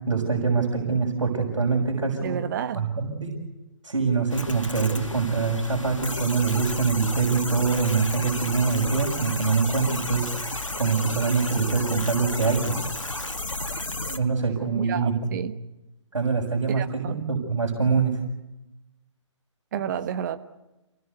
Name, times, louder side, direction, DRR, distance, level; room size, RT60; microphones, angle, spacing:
voice 1, 0.0-2.4 2.7-3.3 3.8-10.3 10.7-12.7 14.1-15.4 16.1-18.1, right 5 dB, 75° right, 6.3 m, -24 dB
voice 2, 2.2-2.9 14.7-15.6 16.8-17.3 19.7-20.4, right 9 dB, 40° right, 1.4 m, -31 dB
sound 1, 4.3-14.2, left 2 dB, 85° left, 1.9 m, -32 dB
29.0 x 19.0 x 8.2 m
figure-of-eight pair, 135°, 16 cm